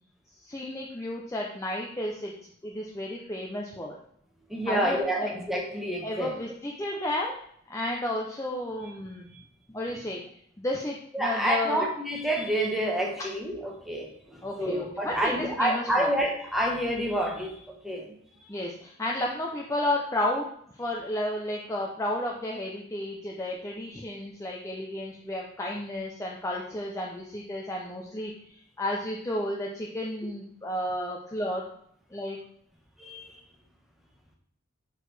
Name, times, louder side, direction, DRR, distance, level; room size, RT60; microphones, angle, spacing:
voice 1, 0.4-2.3 2.6-4.0 4.7-5.3 6.0-7.3 7.7-9.3 9.7-10.2 10.6-11.9 14.4-16.1 18.5-20.5 20.7-31.6 32.1-32.4, left 1 dB, 15° left, -2 dB, 0.5 m, -32 dB
voice 2, 4.5-6.3 11.1-18.1 33.0-33.3, right 1 dB, ahead, 0 dB, 0.9 m, -28 dB
6.3 x 4.7 x 3.3 m, 0.68 s
head